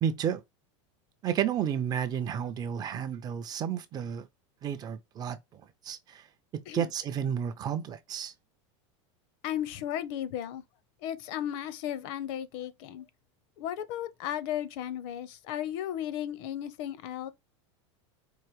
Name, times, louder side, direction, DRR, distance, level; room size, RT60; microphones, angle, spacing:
voice 1, 0.0-0.4 1.2-4.3 4.6-6.2 6.5-8.3, right 9 dB, 25° right, 0.4 m, -32 dB
voice 2, 9.4-10.6 11.0-13.0 13.6-17.3, left 11 dB, 50° left, 0.7 m, -35 dB
4.6 x 2.5 x 2.9 m
supercardioid pair, 150°, 16 cm